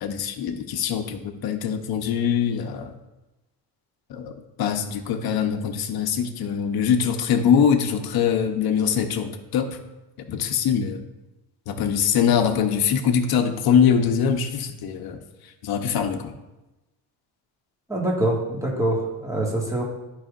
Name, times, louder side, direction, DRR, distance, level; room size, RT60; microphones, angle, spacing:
voice 1, 0.0-2.9 4.1-4.3 4.6-9.8 10.3-11.0 11.7-15.2 15.6-16.3, left 7 dB, 55° left, 6 dB, 0.9 m, -23 dB
voice 2, 17.9-19.8, right 1 dB, 5° right, -3 dB, 1.8 m, -24 dB
11.0 x 5.0 x 2.5 m, 1.0 s
cardioid pair, 100°, 43 cm